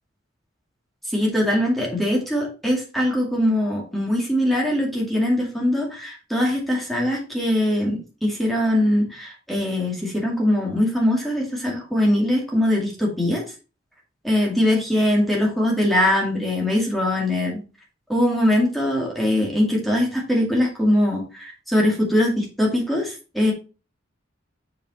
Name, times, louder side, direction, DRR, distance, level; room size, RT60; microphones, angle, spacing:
voice 1, 1.1-13.4 14.2-17.6 18.1-23.5, left 1 dB, ahead, -2 dB, 2.2 m, -22 dB
7.0 x 5.2 x 4.3 m, 0.34 s
head